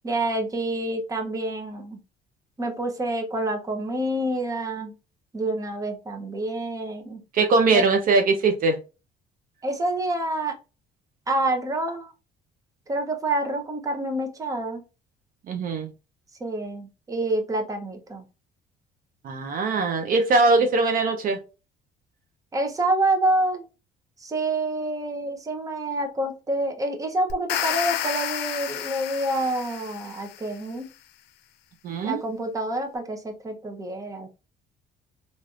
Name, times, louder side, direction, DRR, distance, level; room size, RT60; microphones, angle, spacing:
voice 1, 0.0-2.0 2.6-4.9 5.3-7.2 7.7-7.8 9.6-10.5 11.3-12.1 12.9-14.8 16.4-18.2 22.5-23.7 24.2-30.9 32.0-34.3, right 1 dB, 20° right, 0.8 m, -27 dB
voice 2, 7.3-8.8 15.5-15.9 19.2-21.4 31.8-32.2, right 3 dB, 55° right, 0.6 m, -21 dB
sound 1, 27.3-30.5, left 10 dB, 80° left, 0.5 m, -30 dB
3.3 x 2.6 x 2.4 m
cardioid pair, 110°, 17 cm